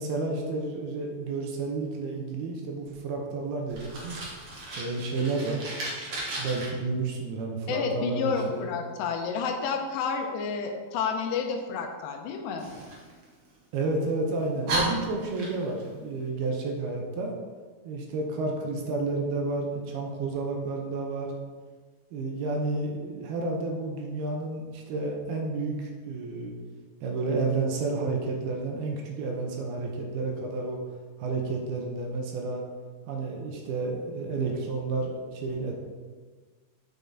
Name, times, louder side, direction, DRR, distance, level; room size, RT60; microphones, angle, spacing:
voice 1, 0.0-4.2 4.8-5.6 6.4-8.6 13.7-17.3 17.8-21.3 22.1-26.5 27.0-30.8 31.2-32.6 33.1-35.7, right 3 dB, 75° right, 1 dB, 2.6 m, -31 dB
Fire, 3.7-6.7 12.6-13.8 14.3-14.4 14.7-15.9, right 2 dB, 55° right, 1.6 m, -34 dB
voice 2, 7.7-12.7, left 5 dB, 85° left, 4 dB, 2.8 m, -30 dB
9.3 x 5.6 x 3.6 m, 1.5 s
omnidirectional pair, 4.9 m